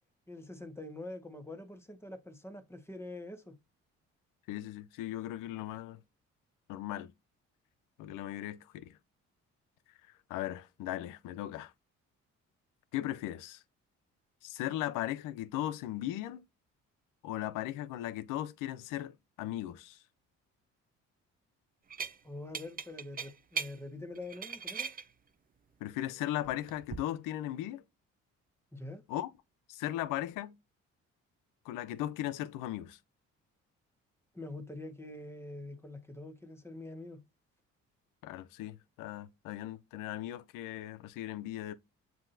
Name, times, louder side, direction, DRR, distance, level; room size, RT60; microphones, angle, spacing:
voice 1, 0.3-3.6 22.2-24.9 28.7-29.0 34.3-37.2, left 2 dB, 10° left, 1.3 m, -45 dB
voice 2, 4.5-6.0 6.7-7.1 8.0-9.0 10.3-11.7 12.9-13.6 14.4-16.4 17.2-20.0 25.8-27.8 29.1-29.3 29.7-30.6 31.7-33.0 38.2-41.8, left 13 dB, 85° left, 0.6 m, -37 dB
sound 1, 21.9-22.2 22.5-23.7 24.2-25.0 26.4-27.0, right 6 dB, 30° right, 0.6 m, -38 dB
7.5 x 2.7 x 2.6 m
supercardioid pair, 65°, 31 cm